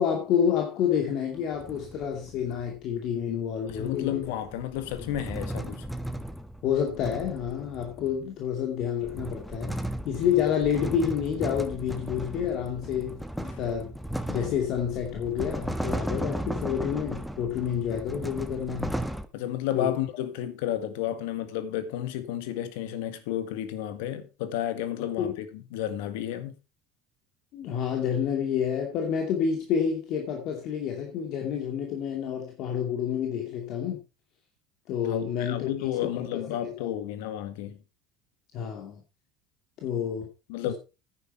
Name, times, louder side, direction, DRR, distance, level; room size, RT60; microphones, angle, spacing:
voice 1, 0.0-4.2 6.6-9.8 10.0-13.9 14.3-19.0 19.7-19.9 25.0-25.4 27.5-34.0 34.9-35.7 36.0-36.9 38.5-39.0 39.8-40.3 40.6-40.7, left 8 dB, 60° left, 2.5 m, -29 dB
sound 1, 1.4-2.7 3.7-8.3 8.8-19.3, right 1 dB, ahead, 1.4 m, -36 dB
voice 2, 3.7-5.9 13.5-13.6 19.3-26.6 35.1-37.8 40.5-40.7, left 11 dB, 80° left, 1.8 m, -32 dB
10.0 x 9.7 x 4.4 m
hypercardioid pair, 85°, 0 cm